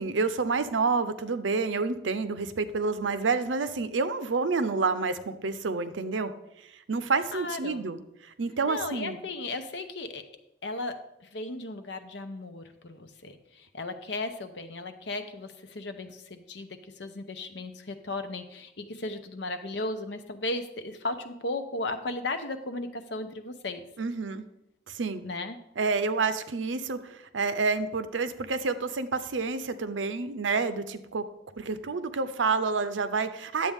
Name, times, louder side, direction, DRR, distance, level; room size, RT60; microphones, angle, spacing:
voice 1, 0.0-6.3 6.9-9.2 24.0-24.4 24.9-25.2 25.8-31.2 31.6-33.7, right 4 dB, 90° right, 11 dB, 0.7 m, -29 dB
voice 2, 7.3-7.8 8.6-10.2 10.6-23.8 25.2-25.6, left 2 dB, 70° left, 8 dB, 0.8 m, -36 dB
10.5 x 7.7 x 3.6 m, 0.86 s
head